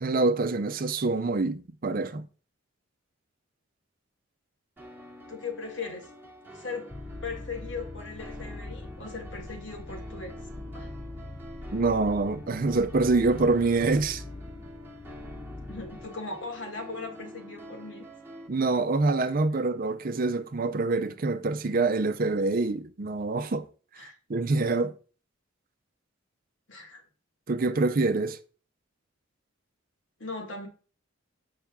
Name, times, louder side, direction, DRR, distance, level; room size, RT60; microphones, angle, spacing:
voice 1, 0.0-2.3 11.7-14.2 18.5-23.7 24.0-24.9 27.5-28.4, right 3 dB, 45° right, 0.5 m, -26 dB
sound 1, 4.8-18.5, equal, 10° right, 1.1 m, -47 dB
voice 2, 5.3-6.1 6.5-6.9 7.2-10.4 10.7-10.9 15.7-18.1 24.0-24.2 26.7-27.0 30.2-30.7, left 4 dB, 60° left, 1.6 m, -38 dB
sound 2, 6.9-16.1, left 2 dB, 15° left, 0.3 m, -42 dB
7.1 x 5.6 x 3.5 m
head